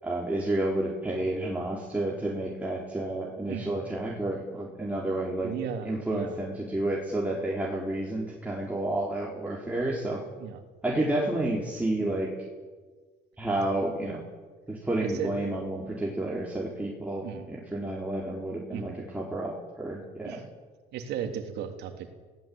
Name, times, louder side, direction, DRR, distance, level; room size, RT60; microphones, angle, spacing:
voice 1, 0.0-5.5 5.8-10.2 10.8-12.3 13.4-14.2 14.7-20.4, right 1 dB, 10° right, -4 dB, 4.5 m, -30 dB
voice 2, 3.4-3.8 5.4-6.4 10.4-10.6 10.9-11.2 12.0-12.2 15.1-15.3 17.2-17.5 18.7-19.1 20.2-20.4 20.9-22.2, right 8 dB, 80° right, 6 dB, 3.3 m, -36 dB
28.0 x 18.5 x 8.9 m, 1.4 s
cardioid pair, 110°, 17 cm